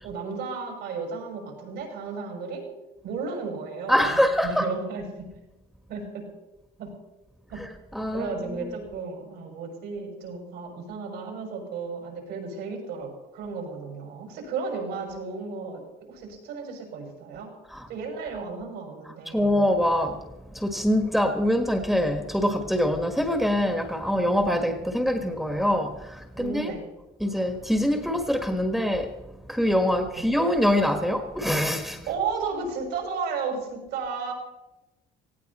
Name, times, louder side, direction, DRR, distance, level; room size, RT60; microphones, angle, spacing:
voice 1, 0.0-2.7 3.0-5.3 5.9-6.2 6.8-6.9 7.5-7.6 8.1-17.5 17.9-19.5 26.4-26.9 30.1-30.3 32.1-34.3, right 5 dB, 85° right, 1 dB, 6.3 m, -34 dB
voice 2, 3.9-4.7 7.9-8.3 17.7-17.8 19.3-20.2 20.6-26.7 27.2-29.1 29.5-32.0, equal, ahead, 5 dB, 1.6 m, -24 dB
18.0 x 16.0 x 4.3 m, 0.99 s
cardioid pair, 110°, 17 cm